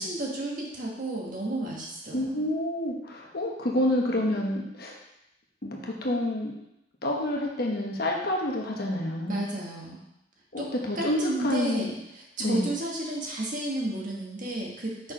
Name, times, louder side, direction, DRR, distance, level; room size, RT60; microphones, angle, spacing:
voice 1, 0.0-2.4 9.3-10.0 10.6-15.1, right 1 dB, 45° right, -3 dB, 1.6 m, -32 dB
voice 2, 2.1-5.0 5.6-6.5 7.0-9.4 10.5-11.9 12.4-12.7, left 1 dB, 60° left, -1 dB, 1.2 m, -28 dB
6.0 x 4.6 x 5.1 m, 0.85 s
head